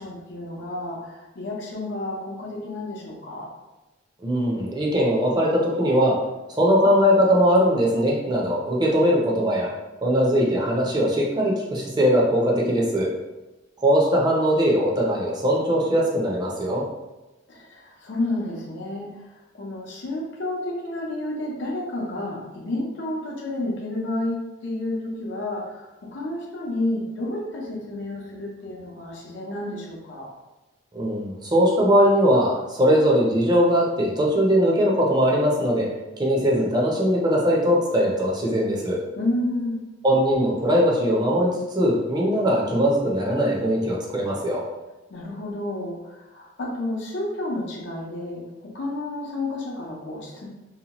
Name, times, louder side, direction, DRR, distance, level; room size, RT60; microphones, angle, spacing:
voice 1, 0.0-3.5 17.5-30.3 39.2-39.8 45.1-50.5, left 1 dB, 65° left, -2 dB, 0.7 m, -31 dB
voice 2, 4.2-6.2 6.5-9.7 10.0-13.1 13.8-16.8 30.9-35.9 36.2-39.0 40.0-41.5 41.7-44.6, equal, 20° right, -4 dB, 0.5 m, -20 dB
2.8 x 2.2 x 2.9 m, 1.1 s
head